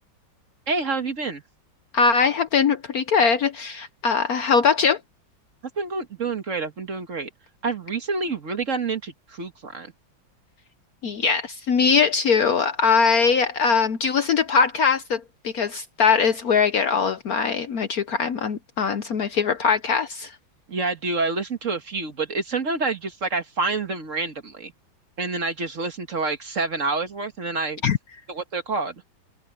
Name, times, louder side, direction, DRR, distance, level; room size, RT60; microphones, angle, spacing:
voice 1, 0.7-1.4 5.8-7.3 7.6-9.9 20.7-24.7 25.2-27.8 28.3-28.9, right 3 dB, 40° right, 1.7 m, -27 dB
voice 2, 1.9-5.0 11.0-20.4 27.8-28.0, left 5 dB, 60° left, 1.1 m, -21 dB
omnidirectional pair, 2.1 m